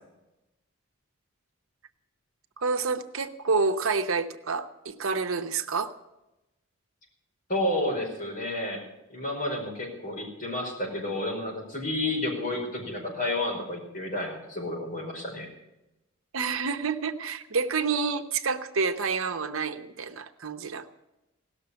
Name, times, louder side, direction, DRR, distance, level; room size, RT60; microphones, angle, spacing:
voice 1, 2.6-5.9 16.3-20.9, right 4 dB, 80° right, 8 dB, 0.9 m, -28 dB
voice 2, 7.5-8.8 9.1-15.5, left 1 dB, 40° left, -2 dB, 5.0 m, -31 dB
17.0 x 6.7 x 9.9 m, 0.95 s
head